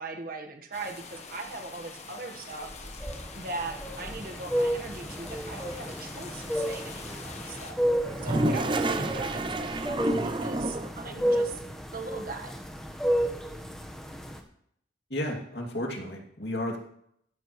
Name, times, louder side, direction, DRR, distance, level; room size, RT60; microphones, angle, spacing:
voice 1, 0.0-2.7 3.3-7.8 8.2-11.6 11.9-12.5, right 3 dB, 50° right, 4 dB, 1.4 m, -39 dB
sound 1, 0.7-7.7, left 4 dB, 35° left, 1.3 m, -45 dB
sound 2, 2.7-14.4, equal, 5° left, 1.2 m, -32 dB
Toilet flush, 8.0-11.1, right 2 dB, 25° right, 0.6 m, -29 dB
voice 2, 15.1-16.8, left 1 dB, 60° left, 1 dB, 2.5 m, -32 dB
13.5 x 13.5 x 3.2 m, 0.70 s
head